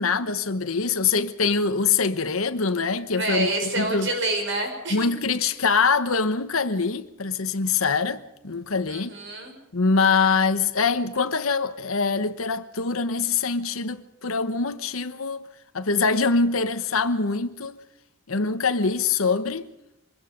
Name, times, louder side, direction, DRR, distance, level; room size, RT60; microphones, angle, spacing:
voice 1, 0.0-4.1 4.9-9.1 9.7-15.5 15.7-17.8 18.3-19.7, left 4 dB, 85° left, 1.1 m, -24 dB
voice 2, 3.2-5.1 5.4-5.5 8.9-9.5, right 2 dB, 60° right, 5.7 m, -27 dB
24.5 x 21.5 x 5.2 m
head